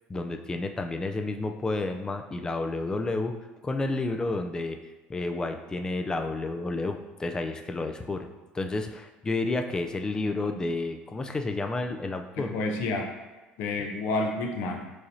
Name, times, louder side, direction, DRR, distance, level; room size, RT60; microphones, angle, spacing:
voice 1, 0.1-3.3 3.6-4.8 5.1-8.3 8.5-12.5 13.8-13.9, left 2 dB, 20° left, 6 dB, 0.4 m, -30 dB
voice 2, 12.4-13.1 13.6-14.9, left 2 dB, 70° left, 3 dB, 0.6 m, -29 dB
4.7 x 3.0 x 2.7 m, 1.2 s
cardioid pair, 110°, 4 cm